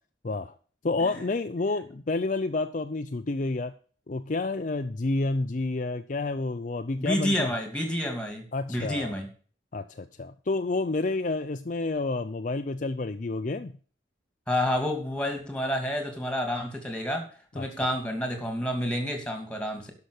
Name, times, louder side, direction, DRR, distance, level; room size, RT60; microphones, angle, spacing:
voice 1, 0.2-0.5 0.8-3.7 4.1-7.5 8.5-9.1 9.7-13.7 17.6-17.7, left 3 dB, 45° left, 9 dB, 0.5 m, -29 dB
voice 2, 6.9-9.3 14.5-17.3 17.5-19.9, equal, 5° left, 4 dB, 2.5 m, -29 dB
11.5 x 5.9 x 6.5 m, 0.42 s
head